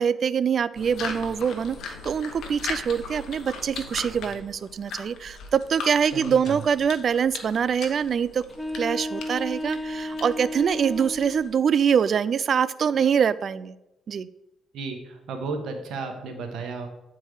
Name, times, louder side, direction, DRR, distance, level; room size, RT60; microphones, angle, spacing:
voice 1, 0.0-8.4 8.8-13.8 14.1-14.3, right 7 dB, 55° right, 18 dB, 0.3 m, -24 dB
sound 1, 0.7-11.6, left 4 dB, 70° left, 1.0 m, -39 dB
voice 2, 6.1-6.6 14.7-16.9, right 4 dB, 75° right, 5 dB, 1.4 m, -33 dB
sound 2, 8.5-11.5, left 1 dB, 5° left, 0.6 m, -33 dB
8.9 x 4.6 x 4.8 m, 0.92 s
cardioid pair, 90°, 0 cm